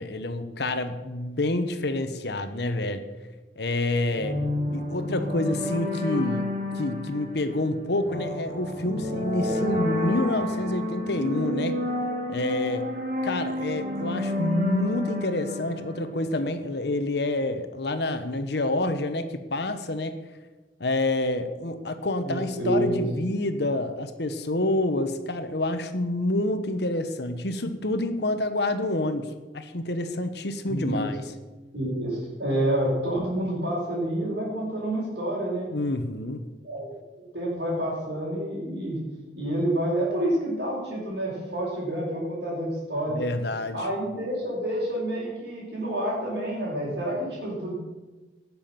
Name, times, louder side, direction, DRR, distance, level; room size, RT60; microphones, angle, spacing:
voice 1, 0.0-3.0 3.6-4.4 4.7-6.5 6.7-11.8 12.3-12.9 13.2-20.1 20.8-31.2 35.7-36.4 43.1-43.8, left 1 dB, 65° left, 9 dB, 1.1 m, -28 dB
sound 1, 4.1-16.6, left 1 dB, 55° right, 3.7 m, -30 dB
voice 2, 22.2-23.0 30.7-31.1 31.7-35.7 36.6-36.9 37.1-39.0 39.3-43.2 43.7-47.7, right 1 dB, 70° right, -10 dB, 4.9 m, -28 dB
18.0 x 7.2 x 5.9 m, 1.2 s
head